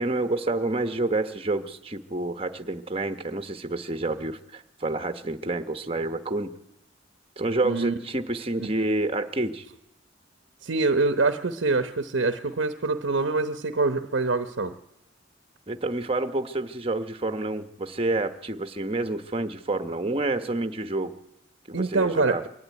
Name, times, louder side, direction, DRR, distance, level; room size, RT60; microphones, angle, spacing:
voice 1, 0.0-6.5 7.4-9.6 15.7-21.1 21.7-22.4, right 2 dB, 30° right, 8 dB, 1.1 m, -28 dB
voice 2, 7.6-8.0 8.6-8.9 10.6-14.7 21.7-22.4, right 3 dB, 80° right, 7 dB, 0.9 m, -25 dB
22.5 x 12.5 x 9.6 m, 0.89 s
head